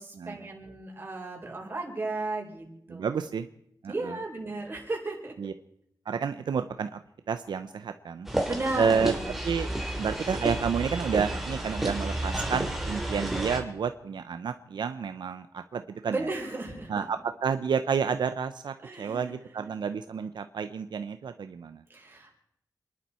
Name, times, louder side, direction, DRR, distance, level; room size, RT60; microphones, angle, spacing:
voice 1, 0.0-3.2 3.9-5.3 8.5-9.3 16.1-17.1 18.8-19.4 21.9-22.3, right 2 dB, 30° right, 0 dB, 4.6 m, -35 dB
voice 2, 2.9-3.5 3.8-4.1 5.4-5.5 6.1-7.0 7.3-8.3 8.8-9.1 9.4-9.7 10.0-16.2 16.9-21.8, right 6 dB, 80° right, 9 dB, 0.8 m, -30 dB
sound 1, 8.3-13.6, right 1 dB, 5° right, 2.8 m, -31 dB
29.0 x 11.0 x 4.4 m, 0.73 s
wide cardioid pair, 165°, 8 cm